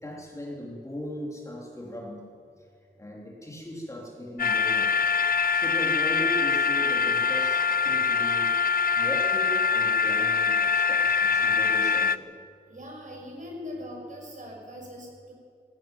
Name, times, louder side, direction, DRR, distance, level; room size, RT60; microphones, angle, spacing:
voice 1, 0.0-2.2 2.6-2.7 3.0-4.9 5.5-8.7 8.9-12.3, equal, 15° left, -3 dB, 3.8 m, -38 dB
sound 1, 4.4-12.2, left 6 dB, 50° left, 0.5 m, -24 dB
voice 2, 12.7-15.3, left 1 dB, 40° right, -1 dB, 6.2 m, -40 dB
17.0 x 16.5 x 9.3 m, 2.2 s
wide cardioid pair, 125°, 19 cm